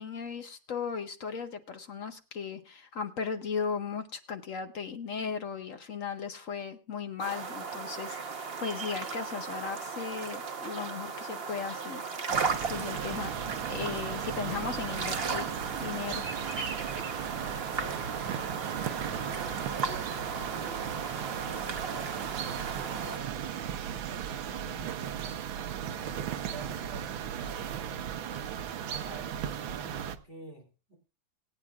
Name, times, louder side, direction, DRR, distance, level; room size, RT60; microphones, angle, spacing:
voice 1, 0.0-12.0 12.6-13.3 13.7-15.5 15.8-16.2, left 6 dB, 55° left, 8 dB, 1.0 m, -36 dB
sound 1, 7.2-23.2, right 5 dB, 35° right, 1.1 m, -36 dB
sound 2, 12.3-30.2, right 9 dB, 80° right, 1.6 m, -36 dB
voice 2, 17.2-23.7 24.1-27.7 28.8-31.0, right 2 dB, 35° left, 2 dB, 3.5 m, -49 dB
25.0 x 9.0 x 2.4 m, 0.33 s
omnidirectional pair, 2.1 m